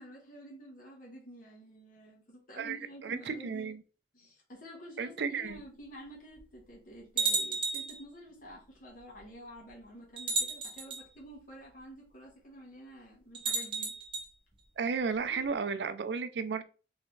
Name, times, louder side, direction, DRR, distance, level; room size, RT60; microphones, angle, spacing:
voice 1, 0.0-3.7 4.1-13.9 15.3-15.6, equal, 50° left, 1.2 m, -50 dB
voice 2, 3.0-3.8 5.0-5.6 14.8-16.6, right 5 dB, 70° right, 0.4 m, -33 dB
sound 1, 5.5-5.6 6.4-6.5 7.2-8.0 9.2-9.3 10.2-11.0 13.3-14.3, right 4 dB, 30° right, 0.8 m, -32 dB
3.6 x 3.3 x 3.1 m
head